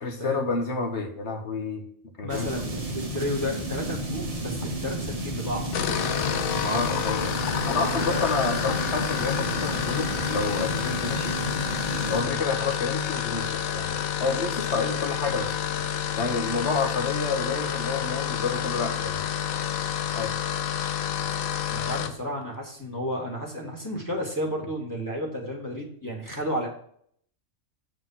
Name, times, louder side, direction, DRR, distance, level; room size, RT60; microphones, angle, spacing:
voice 1, 0.0-1.8 2.2-2.7 6.5-7.3 7.7-11.4 12.1-15.5 16.2-19.3 20.0-20.4, left 4 dB, 55° left, 4 dB, 1.5 m, -29 dB
voice 2, 2.2-5.7 6.6-7.0 7.7-8.3 12.1-12.4 14.7-14.8 21.7-26.7, equal, 15° left, -1 dB, 1.9 m, -32 dB
sound 1, 2.3-12.2, right 1 dB, 25° right, 1.3 m, -32 dB
sound 2, 5.7-22.2, left 9 dB, 80° left, 1.1 m, -29 dB
7.9 x 5.1 x 5.7 m, 0.64 s
omnidirectional pair, 1.5 m